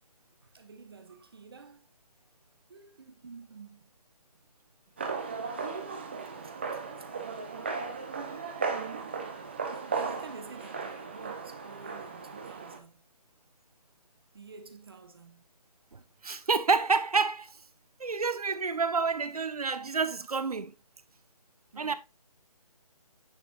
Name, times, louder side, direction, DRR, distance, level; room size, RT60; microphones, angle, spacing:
voice 1, 0.4-1.9 2.7-4.0 6.4-6.6 7.0-7.1 7.5-7.9 9.7-13.0 14.3-15.4 21.7-21.9, right 4 dB, 40° right, 1.4 m, -49 dB
sound 1, 5.0-12.8, right 5 dB, 15° right, 0.8 m, -36 dB
voice 2, 16.2-17.5 18.0-20.7 21.8-21.9, right 4 dB, 70° right, 1.2 m, -28 dB
9.9 x 6.0 x 2.5 m
hypercardioid pair, 175°, 20 cm